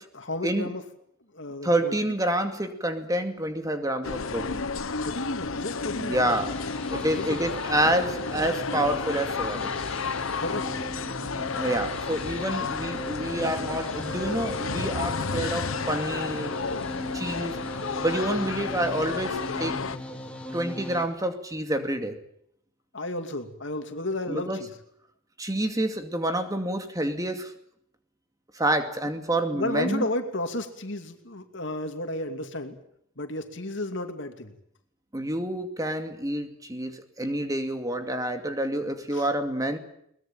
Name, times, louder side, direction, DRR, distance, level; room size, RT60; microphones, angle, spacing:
voice 1, 0.1-0.8 1.3-1.9 5.0-6.2 6.8-7.5 10.4-10.7 12.6-12.7 22.9-24.7 29.5-32.8 33.2-34.5 39.1-39.3, left 1 dB, 60° left, 2.7 m, -33 dB
voice 2, 1.6-4.7 6.0-6.5 6.9-9.7 11.5-16.6 17.1-17.6 18.0-19.9 20.5-22.2 24.3-24.6 25.4-27.5 28.5-30.0 35.1-39.8, right 1 dB, 15° right, 2.4 m, -28 dB
sound 1, 4.0-20.0, left 4 dB, 85° left, 1.1 m, -32 dB
sound 2, 6.3-21.1, equal, 5° left, 3.3 m, -39 dB
22.5 x 20.5 x 9.0 m
head